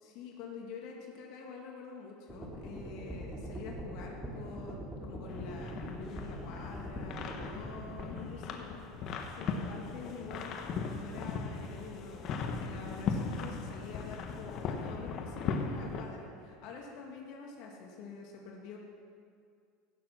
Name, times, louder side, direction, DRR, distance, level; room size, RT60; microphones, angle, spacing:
voice 1, 0.0-18.8, left 4 dB, 65° left, 0 dB, 2.1 m, -47 dB
sound 1, 2.3-8.0, equal, 5° right, 2.5 m, -43 dB
sound 2, 5.3-16.1, left 5 dB, 45° left, 1.3 m, -38 dB
16.0 x 7.2 x 6.1 m, 2.2 s
supercardioid pair, 120°, 0 cm